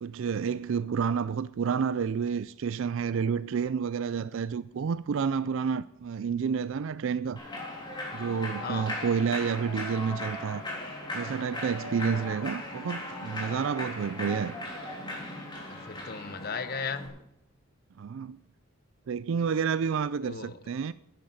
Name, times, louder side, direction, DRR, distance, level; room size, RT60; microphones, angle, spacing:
voice 1, 0.0-7.4 8.1-10.6 11.1-14.5 18.0-18.4 19.1-20.9, right 6 dB, 60° right, 0.3 m, -30 dB
Human voice / Clapping / Cheering, 7.4-17.1, left 1 dB, 20° left, 3.4 m, -38 dB
voice 2, 15.7-17.2 20.2-20.6, left 5 dB, 45° left, 0.9 m, -36 dB
10.5 x 9.4 x 8.0 m
head